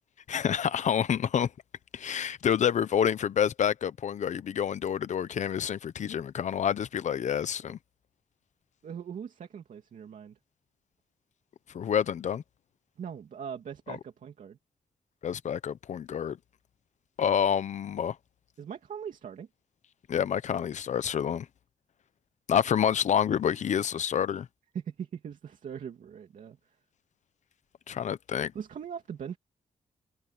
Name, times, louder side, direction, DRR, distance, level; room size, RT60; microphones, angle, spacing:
voice 1, 0.3-1.5 1.9-7.8 11.7-12.4 13.9-14.0 15.2-16.4 17.2-18.2 20.1-21.5 22.5-24.5 27.9-28.5, left 8 dB, 60° left, 0.8 m, -28 dB
voice 2, 8.8-10.4 13.0-14.6 18.6-19.5 24.7-26.8 28.5-29.4, right 7 dB, 70° right, 2.8 m, -40 dB
wide cardioid pair, 155°, 14 cm